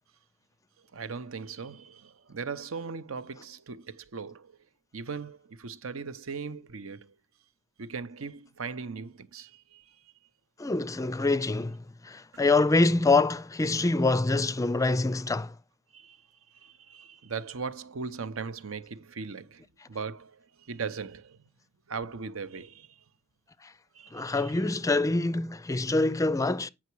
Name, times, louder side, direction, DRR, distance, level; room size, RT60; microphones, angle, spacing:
voice 1, 0.9-4.5 4.9-7.1 7.8-10.0 15.9-16.2 16.5-21.4 21.9-23.0 23.9-24.5, right 5 dB, 70° right, 0.8 m, -39 dB
voice 2, 10.6-15.5 23.6-23.7 24.1-26.7, left 3 dB, 15° left, 0.4 m, -25 dB
9.5 x 5.9 x 4.6 m
head